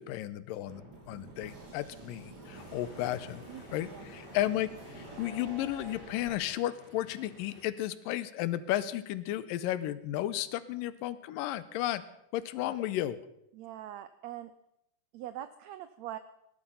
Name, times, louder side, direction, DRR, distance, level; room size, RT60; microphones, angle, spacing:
voice 1, 0.0-3.4 3.7-12.0 12.3-13.2, left 13 dB, 85° left, 15 dB, 2.4 m, -33 dB
sound 1, 0.7-6.3, right 2 dB, 30° right, 3.6 m, -48 dB
sound 2, 2.5-7.6, left 2 dB, 15° left, 3.0 m, -54 dB
voice 2, 3.5-4.1 13.5-14.5 15.1-16.2, right 12 dB, 90° right, 12 dB, 1.5 m, -43 dB
18.5 x 11.5 x 5.6 m, 0.80 s
omnidirectional pair, 3.9 m